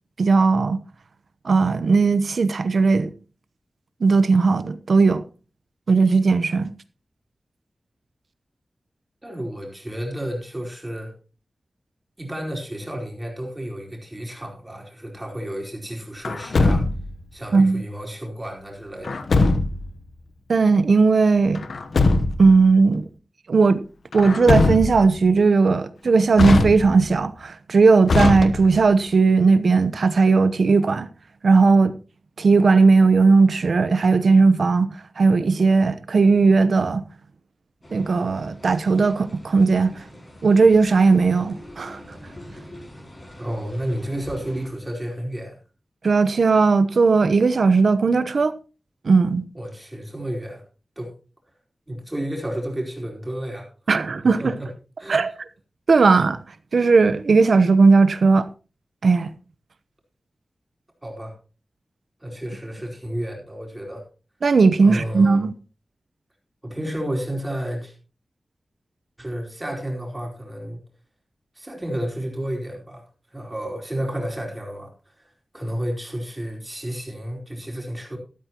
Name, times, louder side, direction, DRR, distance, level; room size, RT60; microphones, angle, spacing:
voice 1, 0.2-0.8 1.4-3.1 4.0-5.2 5.9-6.7 17.5-17.8 20.5-21.6 22.4-23.1 23.5-23.8 24.1-31.1 31.4-32.0 32.4-37.0 37.9-40.0 40.4-42.0 46.0-48.5 49.0-49.5 53.9-54.5 55.1-55.3 55.9-56.4 56.7-58.5 59.0-59.3 64.4-65.5, right 4 dB, 75° right, 0.9 m, -17 dB
voice 2, 9.2-11.1 12.2-16.9 17.3-19.2 43.4-45.6 49.5-50.6 51.0-51.1 51.9-54.0 54.4-54.7 55.0-55.2 61.0-61.3 62.2-64.0 64.8-65.5 66.6-67.9 69.2-70.8 71.5-73.0 73.3-74.9 75.2-75.3 75.5-78.2, right 1 dB, 20° right, 4.6 m, -31 dB
Truck, 16.2-17.2 19.0-19.9 21.6-22.5 24.1-25.2 26.3-27.2 28.1-28.9, left 3 dB, 85° left, 1.0 m, -21 dB
sound 1, 37.8-44.7, left 1 dB, 35° left, 6.4 m, -44 dB
13.0 x 12.5 x 3.0 m
wide cardioid pair, 85°, 0 cm